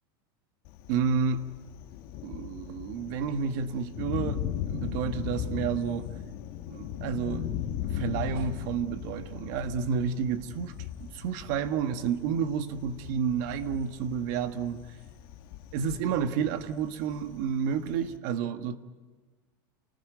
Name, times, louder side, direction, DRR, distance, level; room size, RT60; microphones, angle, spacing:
Thunder, 0.6-18.2, left 10 dB, 45° left, 2.0 m, -38 dB
voice 1, 0.9-1.4 2.2-4.4 4.7-6.1 6.7-7.4 7.9-10.7 11.0-14.8 15.7-18.8, right 7 dB, 50° right, 1.6 m, -30 dB
28.5 x 20.0 x 9.3 m
supercardioid pair, 155°, 12 cm